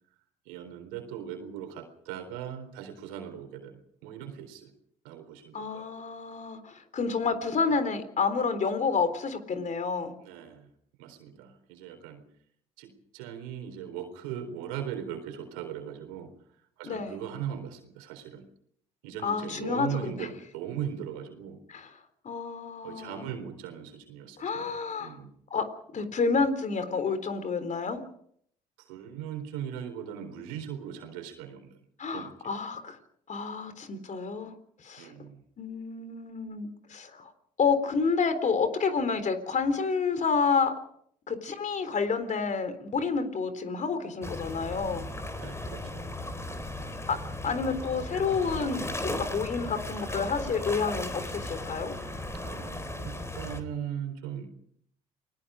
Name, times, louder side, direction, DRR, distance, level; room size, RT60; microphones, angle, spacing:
voice 1, 0.5-4.7 5.0-5.9 10.2-10.7 11.0-12.2 12.8-16.3 16.8-18.4 19.0-21.6 22.8-24.7 25.0-25.3 28.8-31.8 32.1-32.3 35.0-35.4 45.4-46.1 46.5-46.7 52.4-54.5, right 9 dB, 85° right, 7 dB, 4.0 m, -39 dB
voice 2, 5.5-10.1 16.8-17.2 19.2-20.3 21.7-21.9 22.2-23.3 24.4-25.1 25.5-28.0 32.0-33.0 33.3-34.5 34.8-35.1 35.6-37.3 37.6-40.7 41.3-45.0 47.1-47.2 47.4-51.9, left 5 dB, 45° left, 10 dB, 3.9 m, -29 dB
sound 1, 44.2-53.6, left 1 dB, 15° left, 3.9 m, -36 dB
29.5 x 20.0 x 5.1 m, 0.68 s
supercardioid pair, 65°, 17 cm